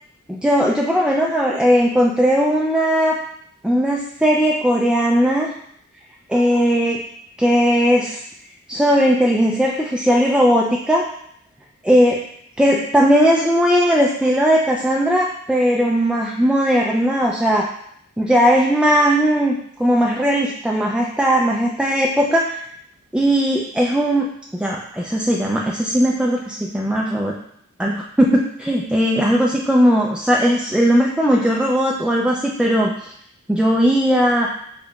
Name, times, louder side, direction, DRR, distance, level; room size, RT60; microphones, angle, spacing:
voice 1, 0.3-3.2 3.6-5.5 6.3-7.0 7.4-8.2 8.7-11.1 11.8-12.2 12.6-17.7 18.2-22.6 23.1-27.3 27.8-33.1 33.5-34.5, equal, 5° right, -1 dB, 0.3 m, -18 dB
3.8 x 3.6 x 2.3 m, 0.69 s
wide cardioid pair, 40°, 30 cm